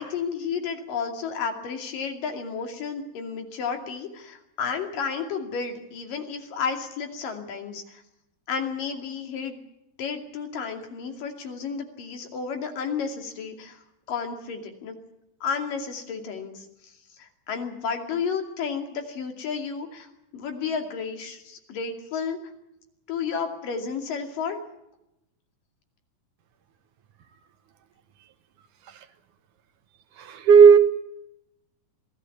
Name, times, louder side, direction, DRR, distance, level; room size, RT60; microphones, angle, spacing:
voice 1, 0.0-8.0 8.5-9.6 10.0-13.8 14.1-15.0 15.4-16.7 17.2-22.4 23.1-24.6, left 6 dB, 70° left, 5 dB, 4.2 m, -32 dB
voice 2, 30.2-30.8, right 6 dB, 70° right, 10 dB, 2.5 m, -14 dB
26.0 x 17.0 x 7.3 m, 0.86 s
omnidirectional pair, 4.0 m